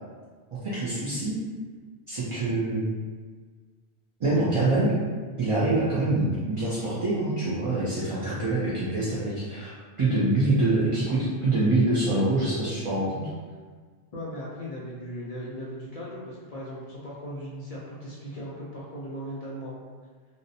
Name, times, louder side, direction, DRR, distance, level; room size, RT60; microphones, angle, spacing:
voice 1, 0.5-1.4 2.1-2.9 4.2-4.9 5.4-13.3, right 2 dB, 50° right, -10 dB, 0.4 m, -25 dB
voice 2, 14.1-19.7, equal, 55° left, -7 dB, 0.4 m, -38 dB
2.5 x 2.0 x 2.6 m, 1.5 s
omnidirectional pair, 1.1 m